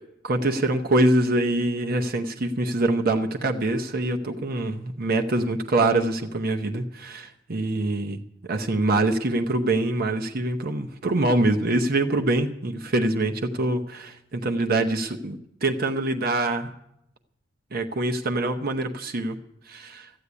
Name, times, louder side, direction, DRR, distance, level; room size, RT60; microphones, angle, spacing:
voice 1, 0.2-8.2 8.5-16.7 17.7-19.4 19.7-20.1, right 2 dB, 50° right, 4 dB, 0.8 m, -24 dB
14.0 x 8.3 x 9.7 m, 0.82 s
head